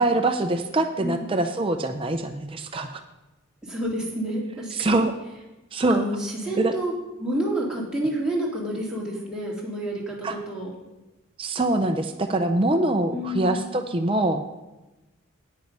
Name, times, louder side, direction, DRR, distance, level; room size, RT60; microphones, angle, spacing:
voice 1, 0.0-3.0 4.7-5.1 5.7-6.1 6.6-6.7 10.2-10.3 11.4-14.4, right 2 dB, 25° right, 6 dB, 0.5 m, -24 dB
voice 2, 1.0-1.4 3.6-5.0 5.9-6.9 7.2-10.7 13.1-13.7, right 1 dB, 5° right, -5 dB, 2.5 m, -29 dB
9.5 x 9.1 x 5.4 m, 1.1 s
head